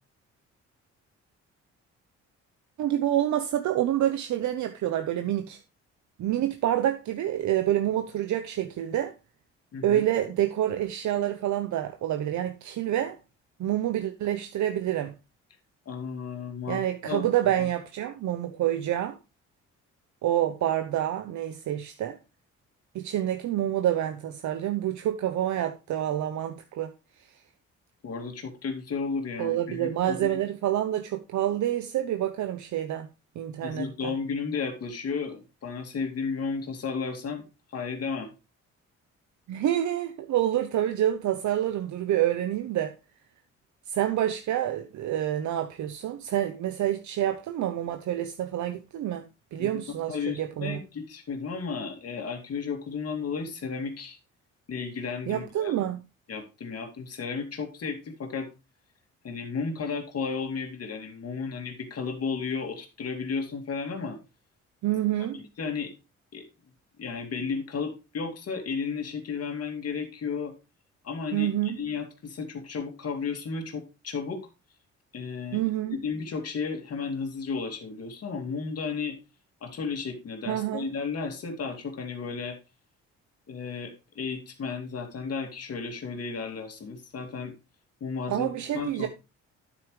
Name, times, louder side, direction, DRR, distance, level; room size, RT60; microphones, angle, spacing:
voice 1, 2.8-5.6 6.2-9.1 9.8-13.2 13.6-15.1 16.7-19.2 20.2-22.2 22.9-26.9 27.2-27.3 29.4-33.1 33.3-34.1 39.5-42.9 43.9-50.8 55.3-56.0 64.8-65.4 71.3-71.9 75.5-76.0 80.5-80.9 88.3-89.1, right 12 dB, 70° right, 0.9 m, -27 dB
voice 2, 15.9-17.2 28.0-30.4 33.6-38.3 49.6-49.8 50.1-54.2 54.7-55.8 56.3-58.5 59.2-64.2 65.3-65.9 66.3-66.5 67.0-70.5 71.0-74.5 75.1-75.6 76.0-79.2 79.6-82.6 83.5-87.5 88.0-88.5 88.7-89.1, left 5 dB, 55° left, 2.5 m, -33 dB
9.6 x 8.6 x 3.2 m
cardioid pair, 90°, 30 cm